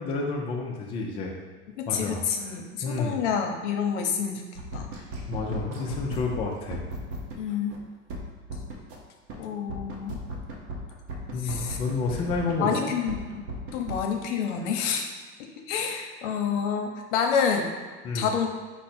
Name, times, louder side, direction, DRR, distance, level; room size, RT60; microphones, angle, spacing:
voice 1, 0.0-1.4 1.9-2.5 2.8-3.2 5.3-6.8 11.3-12.9 18.0-18.3, left 3 dB, 15° left, -1 dB, 0.3 m, -30 dB
voice 2, 1.8-4.4 4.7-4.9 7.4-7.8 9.4-10.2 11.4-11.8 12.6-13.4 13.7-15.1 15.4-17.7 18.1-18.5, left 6 dB, 85° left, 4 dB, 0.8 m, -28 dB
sound 1, 4.5-7.4 7.7-7.8 8.1-9.0 9.3-9.4 9.7-12.6 12.9-14.0, right 1 dB, 45° right, 0.7 m, -36 dB
5.1 x 2.0 x 4.2 m, 1.4 s
supercardioid pair, 150°, 35 cm